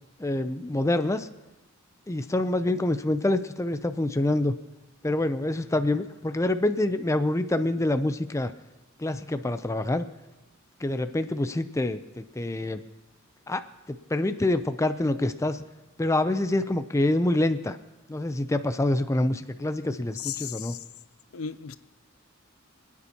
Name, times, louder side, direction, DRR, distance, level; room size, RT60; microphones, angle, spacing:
voice 1, 0.2-1.3 2.1-4.5 5.0-8.5 9.0-10.1 10.8-12.8 13.5-13.6 13.9-15.6 16.0-17.8 18.1-20.8, left 1 dB, 15° left, 10 dB, 0.4 m, -26 dB
voice 2, 20.2-20.8 21.3-21.8, left 8 dB, 85° left, 13 dB, 0.6 m, -35 dB
27.5 x 9.6 x 2.9 m, 0.98 s
head